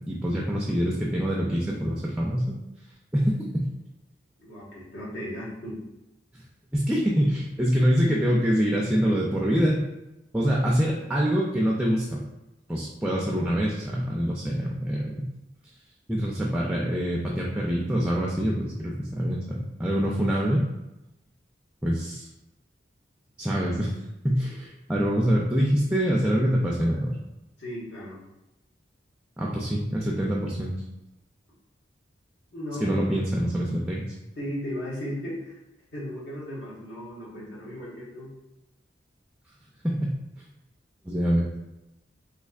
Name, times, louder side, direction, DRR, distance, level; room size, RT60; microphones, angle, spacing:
voice 1, 0.1-2.6 3.1-3.7 6.7-9.8 10.3-12.2 12.7-15.2 16.1-20.7 21.8-22.3 23.4-24.0 24.2-27.1 29.4-30.7 32.8-34.0 39.8-40.1 41.0-41.5, equal, 5° right, -3 dB, 0.3 m, -25 dB
voice 2, 4.4-5.8 27.6-28.2 32.5-33.1 34.3-35.6 35.9-38.3, equal, 75° left, -7 dB, 1.4 m, -35 dB
4.2 x 2.7 x 2.4 m, 0.97 s
head